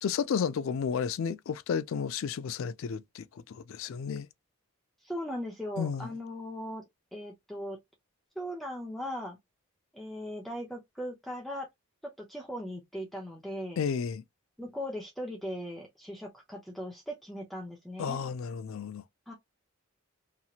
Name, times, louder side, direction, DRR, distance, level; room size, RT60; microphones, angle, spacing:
voice 1, 0.0-4.3 5.8-6.1 13.8-14.2 18.0-19.0, left 6 dB, 70° left, 0.3 m, -32 dB
voice 2, 5.0-6.8 7.1-7.8 8.4-9.4 9.9-11.7 12.0-13.8 14.6-18.2 19.3-19.4, equal, ahead, 0.6 m, -38 dB
2.9 x 2.7 x 2.4 m
head